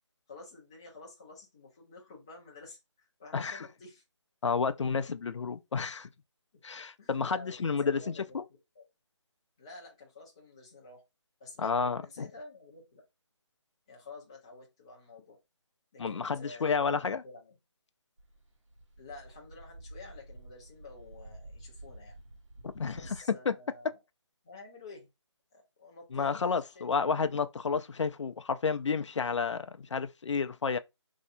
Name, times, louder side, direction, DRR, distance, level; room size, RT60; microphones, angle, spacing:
voice 1, 0.3-4.0 7.0-8.4 8.7-8.9 9.6-11.0 11.4-13.0 13.9-15.4 15.9-16.8 17.2-17.6 19.0-22.1 22.9-24.0 24.4-25.1 25.5-27.3, left 3 dB, 10° left, 0.4 m, -50 dB
voice 2, 3.3-3.7 4.4-6.1 6.6-8.4 11.6-12.3 16.0-17.2 22.6-23.2 23.5-23.6 26.1-30.8, left 5 dB, 70° left, 0.4 m, -31 dB
sound 1, 18.2-23.2, right 1 dB, 85° right, 1.1 m, -50 dB
3.1 x 2.7 x 2.5 m
figure-of-eight pair, 165°, 16 cm